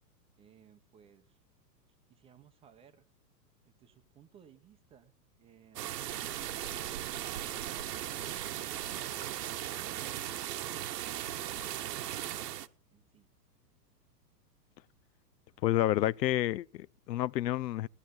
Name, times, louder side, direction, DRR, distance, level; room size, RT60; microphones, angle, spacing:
voice 1, 0.4-1.4 2.1-3.0 3.6-5.1 5.4-6.0 12.9-13.3, right 9 dB, 10° right, 0.6 m, -62 dB
sound 1, 5.8-12.7, right 12 dB, 70° right, 1.1 m, -37 dB
voice 2, 15.6-17.9, left 14 dB, 80° left, 0.6 m, -29 dB
18.0 x 11.5 x 3.9 m
hypercardioid pair, 145°, 49 cm